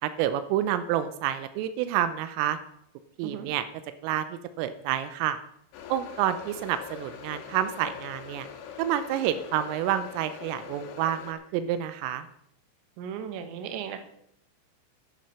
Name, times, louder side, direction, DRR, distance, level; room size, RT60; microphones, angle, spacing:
voice 1, 0.0-2.6 3.2-3.6 4.0-5.4 5.9-8.5 8.8-12.3, right 11 dB, 90° right, 11 dB, 3.3 m, -28 dB
sound 1, 5.7-11.3, left 8 dB, 80° left, 4.0 m, -43 dB
voice 2, 13.0-14.0, right 8 dB, 70° right, 7 dB, 3.4 m, -36 dB
11.0 x 10.5 x 5.6 m, 0.72 s
omnidirectional pair, 5.7 m